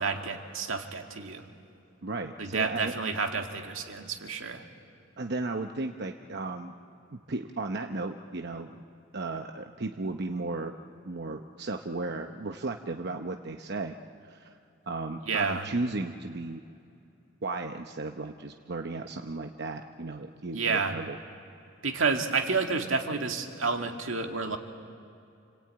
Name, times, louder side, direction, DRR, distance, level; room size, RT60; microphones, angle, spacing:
voice 1, 0.0-1.4 2.4-4.6 15.3-15.6 20.5-20.9 21.8-24.6, right 4 dB, 85° right, 4 dB, 2.0 m, -30 dB
voice 2, 2.0-2.9 5.2-6.7 7.1-8.8 9.1-10.8 11.0-14.0 14.3-14.5 14.9-16.6 17.4-21.2, right 3 dB, 55° right, 5 dB, 0.9 m, -35 dB
28.5 x 20.5 x 9.0 m, 2.6 s
head